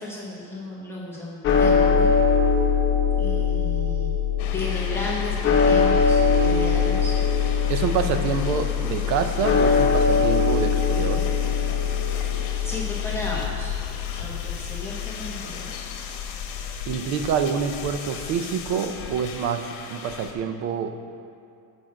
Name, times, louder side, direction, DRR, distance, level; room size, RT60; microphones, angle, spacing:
voice 1, 0.0-2.1 3.2-4.1 4.5-7.1 12.6-13.7 14.1-15.7, left 2 dB, 5° left, -7 dB, 1.0 m, -34 dB
sound 1, 1.4-15.7, left 6 dB, 25° left, 0.8 m, -22 dB
sound 2, 4.4-20.3, left 6 dB, 65° left, 1.3 m, -36 dB
voice 2, 7.7-11.3 16.9-20.9, right 7 dB, 40° right, 8 dB, 0.5 m, -27 dB
7.8 x 6.2 x 7.4 m, 2.5 s
cardioid pair, 170°, 44 cm